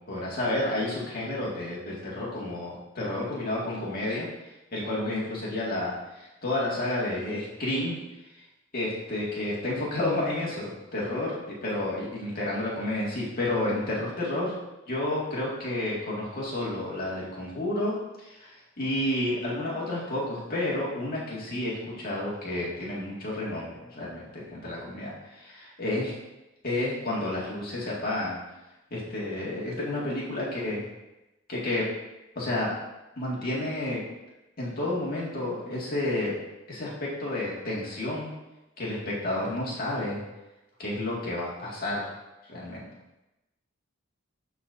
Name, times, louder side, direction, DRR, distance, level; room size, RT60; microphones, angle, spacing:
voice 1, 0.1-4.3 4.7-8.0 8.7-14.5 14.9-26.2 26.6-28.4 28.9-30.9 31.5-31.9 32.4-32.7 33.2-34.0 34.6-36.3 36.7-38.3 38.8-40.2 40.8-42.1 42.5-42.9, left 1 dB, 50° left, -5 dB, 2.0 m, -30 dB
11.5 x 4.1 x 2.6 m, 1.0 s
head